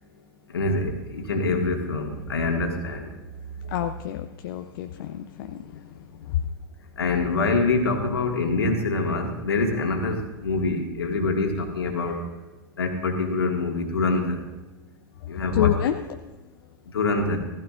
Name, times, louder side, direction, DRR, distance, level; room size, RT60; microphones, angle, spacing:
voice 1, 0.5-3.1 3.6-3.7 7.0-12.3 12.8-14.4 15.3-15.7 16.9-17.4, left 3 dB, 75° left, 2 dB, 1.9 m, -25 dB
voice 2, 3.7-6.4 15.2-16.2, left 11 dB, 60° left, 7 dB, 0.6 m, -28 dB
15.5 x 15.5 x 2.5 m, 1.1 s
figure-of-eight pair, 90°, 13 cm